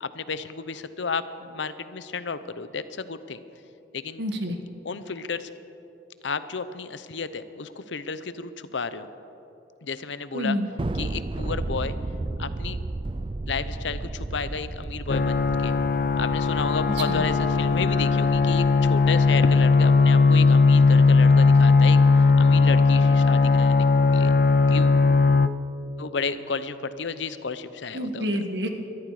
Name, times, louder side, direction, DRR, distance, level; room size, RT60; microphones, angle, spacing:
voice 1, 0.0-3.4 3.9-4.2 4.8-5.5 6.2-9.1 9.8-10.6 10.9-12.0 12.4-12.8 13.5-15.8 16.2-23.9 24.1-24.3 24.7-25.0 26.0-28.3, left 5 dB, 90° left, 13 dB, 0.7 m, -32 dB
voice 2, 4.2-4.6 10.3-10.7 17.1-17.2 27.9-28.7, equal, 70° right, 5 dB, 1.6 m, -28 dB
Thunder, 10.8-21.4, right 2 dB, 30° right, 0.4 m, -34 dB
sound 1, 15.1-25.5, left 4 dB, 50° left, 0.4 m, -18 dB
21.5 x 13.5 x 4.9 m, 3.0 s
head